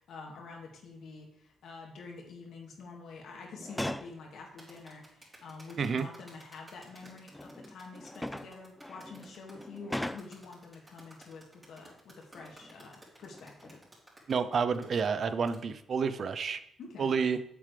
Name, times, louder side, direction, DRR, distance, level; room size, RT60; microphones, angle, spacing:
voice 1, 0.0-13.8 16.8-17.2, left 4 dB, 70° left, 1 dB, 2.0 m, -47 dB
sound 1, 3.5-4.2 5.4-5.5 6.7-10.5 12.3-12.8 13.2-14.0 14.5-14.7, left 1 dB, 10° left, 0.3 m, -41 dB
sound 2, 4.6-15.6, right 1 dB, 20° right, 3.7 m, -56 dB
voice 2, 14.3-16.6 17.0-17.4, right 5 dB, 50° right, 12 dB, 0.5 m, -29 dB
8.6 x 7.5 x 3.3 m, 0.75 s
cardioid pair, 90°, 0 cm